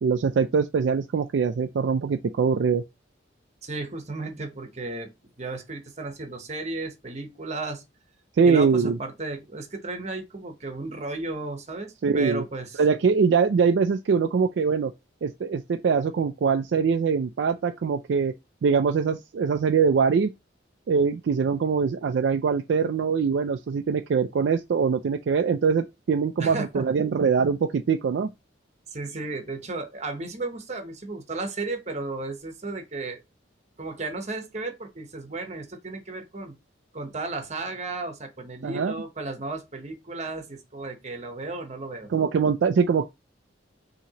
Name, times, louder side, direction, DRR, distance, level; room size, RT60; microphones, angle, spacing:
voice 1, 0.0-2.8 8.4-9.0 12.0-12.4 12.8-14.9 15.2-18.3 18.6-20.3 20.9-28.3 38.6-39.0 42.1-43.1, right 5 dB, 65° right, 0.3 m, -23 dB
voice 2, 3.6-5.1 5.4-7.8 8.4-12.8 26.4-26.8 28.9-33.2 33.8-36.6 36.9-42.1, right 3 dB, 35° right, 0.9 m, -34 dB
5.8 x 2.9 x 2.8 m
head